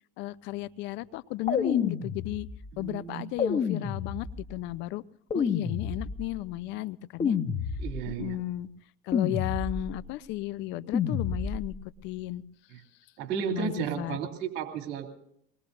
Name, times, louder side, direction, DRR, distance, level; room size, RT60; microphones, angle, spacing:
voice 1, 0.2-2.5 2.8-5.0 5.3-7.4 8.1-8.7 9.0-11.7 12.0-12.4 13.5-14.2, left 15 dB, 65° left, 19 dB, 0.8 m, -34 dB
sound 1, 1.5-2.7 3.4-4.6 5.3-6.4 7.2-8.2 9.1-10.1 10.9-11.8, left 6 dB, 35° left, 2.0 m, -30 dB
voice 2, 2.8-3.2 7.8-8.4 12.7-12.8 13.2-15.1, right 8 dB, 65° right, 4 dB, 2.9 m, -33 dB
23.5 x 21.0 x 2.6 m, 0.74 s
supercardioid pair, 90°, 20 cm